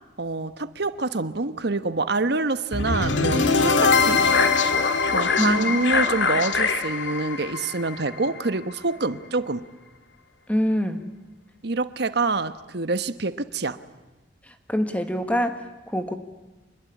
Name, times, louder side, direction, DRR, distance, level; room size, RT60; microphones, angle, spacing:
voice 1, 0.2-4.2 5.1-9.6 11.6-13.8, right 3 dB, 60° right, 12 dB, 1.1 m, -26 dB
sound 1, 2.7-8.8, left 4 dB, 85° left, 1.9 m, -22 dB
voice 2, 10.5-11.0 14.7-16.1, equal, 10° left, 7 dB, 1.6 m, -25 dB
26.5 x 21.0 x 9.9 m, 1.1 s
head